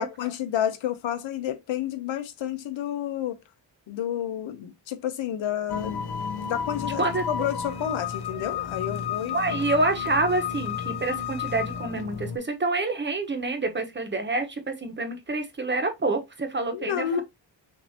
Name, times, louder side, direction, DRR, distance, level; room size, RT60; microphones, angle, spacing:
voice 1, 0.0-3.4 3.9-6.0 6.5-9.6 16.7-17.2, left 10 dB, 80° left, 0.9 m, -30 dB
sound 1, 5.7-12.4, left 7 dB, 60° left, 0.8 m, -32 dB
voice 2, 6.8-7.2 9.3-17.2, right 2 dB, 25° right, 1.0 m, -27 dB
6.4 x 2.7 x 2.8 m
cardioid pair, 110°, 45 cm